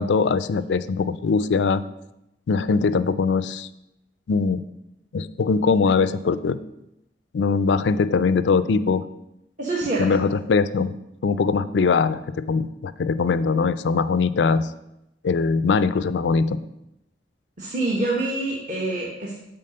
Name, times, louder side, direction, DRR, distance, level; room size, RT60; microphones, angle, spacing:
voice 1, 0.0-1.8 2.5-3.7 4.3-4.6 5.1-6.6 7.3-9.0 10.0-10.9 11.2-14.7 15.2-16.6, left 4 dB, 80° left, 14 dB, 0.4 m, -21 dB
voice 2, 9.6-10.2 17.6-19.4, right 2 dB, 45° right, -3 dB, 1.3 m, -26 dB
7.6 x 4.1 x 6.6 m, 0.86 s
head